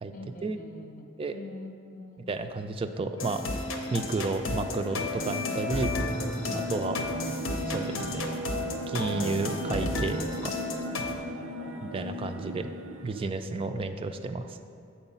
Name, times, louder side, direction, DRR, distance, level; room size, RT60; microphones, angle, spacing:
voice 1, 0.1-2.3 10.8-12.1 13.5-13.8, left 1 dB, 40° left, 4 dB, 0.6 m, -46 dB
voice 2, 2.3-3.4 3.9-5.9 6.7-7.0 7.7-8.2 8.9-10.2 10.4-10.5 11.8-12.7 13.0-14.6, right 3 dB, 25° right, 8 dB, 0.3 m, -31 dB
sound 1, 3.2-11.2, left 2 dB, 75° left, 0.7 m, -33 dB
sound 2, 4.1-13.3, right 1 dB, 85° right, 0.5 m, -37 dB
sound 3, 5.7-7.2, equal, 10° left, 0.7 m, -38 dB
7.9 x 4.6 x 5.5 m, 2.5 s
head